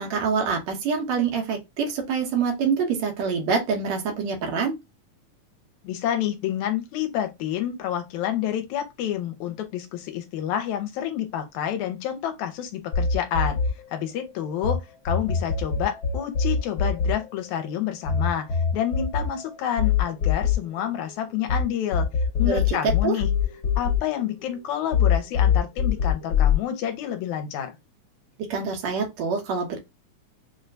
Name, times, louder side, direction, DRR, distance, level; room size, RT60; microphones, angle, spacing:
voice 1, 0.0-4.8 22.4-23.2 28.5-29.8, right 5 dB, 70° right, 2.1 m, -26 dB
voice 2, 5.8-13.6 13.9-22.1 22.4-23.3 23.8-27.7, left 10 dB, 80° left, 2.0 m, -29 dB
sound 1, 12.9-14.8 15.1-21.6 21.9-24.6 24.9-26.6, left 7 dB, 55° left, 1.7 m, -23 dB
6.3 x 2.2 x 2.6 m
omnidirectional pair, 3.4 m